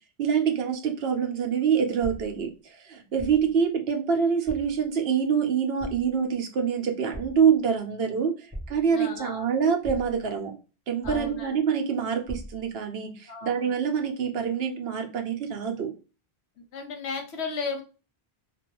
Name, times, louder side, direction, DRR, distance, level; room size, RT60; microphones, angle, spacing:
voice 1, 0.2-2.5 2.8-8.3 8.7-10.5 10.9-15.9, right 7 dB, 75° right, 4 dB, 0.8 m, -25 dB
sound 1, 2.0-2.5 3.2-3.6 4.4-4.8 5.8-6.2 7.1-7.5 8.5-9.1 9.8-10.3 11.0-11.6 12.3-12.7, equal, 15° right, 0.6 m, -39 dB
voice 2, 8.9-9.5 11.0-11.6 13.3-13.7 16.7-17.8, left 4 dB, 85° left, 4 dB, 1.0 m, -34 dB
2.3 x 2.2 x 2.9 m, 0.32 s
omnidirectional pair, 1.1 m